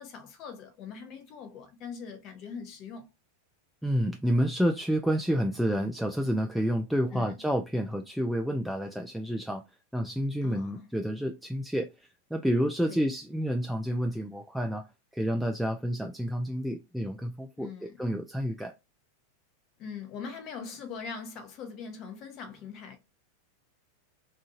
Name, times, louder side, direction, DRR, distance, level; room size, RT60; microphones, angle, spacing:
voice 1, 0.0-3.0 7.1-7.4 10.4-10.9 12.9-13.1 17.6-18.0 19.8-23.0, left 6 dB, 45° left, 0.8 m, -42 dB
voice 2, 3.8-9.6 9.9-11.9 12.3-14.9 15.1-18.7, equal, ahead, 0.3 m, -29 dB
2.7 x 2.4 x 2.4 m
hypercardioid pair, 95°, 0 cm